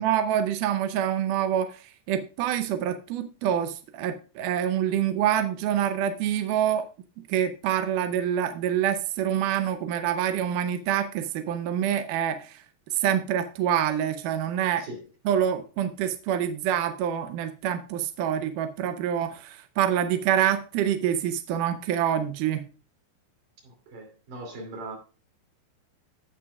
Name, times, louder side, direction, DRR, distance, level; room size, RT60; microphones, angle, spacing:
voice 1, 0.0-6.9 7.2-12.6 12.9-14.9 15.3-22.7, right 10 dB, 80° right, 1.9 m, -26 dB
voice 2, 23.6-25.0, right 2 dB, 55° right, 4.1 m, -40 dB
17.0 x 6.0 x 2.3 m
omnidirectional pair, 4.4 m